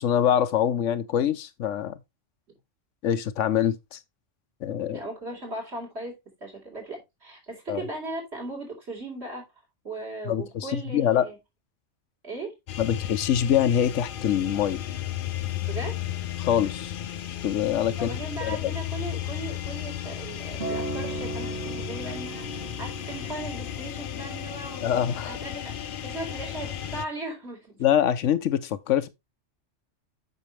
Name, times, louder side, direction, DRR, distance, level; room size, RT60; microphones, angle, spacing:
voice 1, 0.0-2.0 3.0-4.0 4.6-5.0 7.7-7.8 10.3-10.7 10.9-11.2 12.8-14.8 16.4-17.0 17.4-18.7 24.8-25.4 27.8-29.1, left 10 dB, 80° left, 1.1 m, -24 dB
voice 2, 4.9-6.1 6.4-9.4 9.8-11.4 12.2-12.5 15.6-16.0 17.9-27.8, right 2 dB, 60° right, 4.4 m, -38 dB
sound 1, 12.7-27.0, left 11 dB, 55° left, 0.7 m, -34 dB
Acoustic guitar, 20.6-24.9 25.7-25.8, right 3 dB, 80° right, 2.2 m, -37 dB
8.3 x 6.5 x 3.3 m
omnidirectional pair, 1.3 m